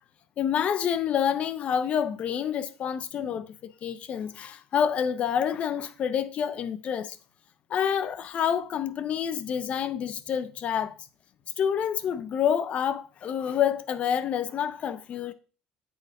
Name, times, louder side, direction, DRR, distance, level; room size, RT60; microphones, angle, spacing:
voice 1, 0.4-7.2 7.7-11.0 11.6-15.3, left 8 dB, 40° left, 0.6 m, -28 dB
7.7 x 4.5 x 4.7 m
cardioid pair, 170°, 3 cm